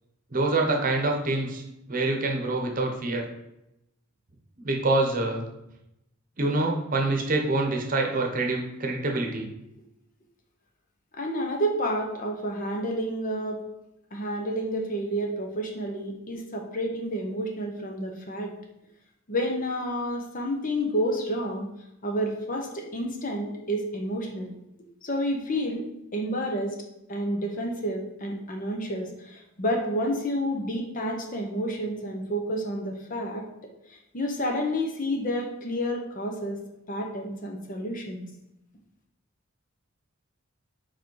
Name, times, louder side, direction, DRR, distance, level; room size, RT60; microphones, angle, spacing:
voice 1, 0.3-1.6 1.9-3.3 4.6-5.4 6.4-9.5, right 2 dB, 40° right, 1 dB, 1.0 m, -26 dB
voice 2, 11.2-13.6 14.1-18.5 19.3-21.7 22.0-24.5 25.0-25.8 26.1-26.8 27.1-33.4 33.9-36.6 36.9-38.2, equal, 40° left, 1 dB, 1.0 m, -30 dB
5.0 x 4.3 x 4.7 m, 0.87 s
head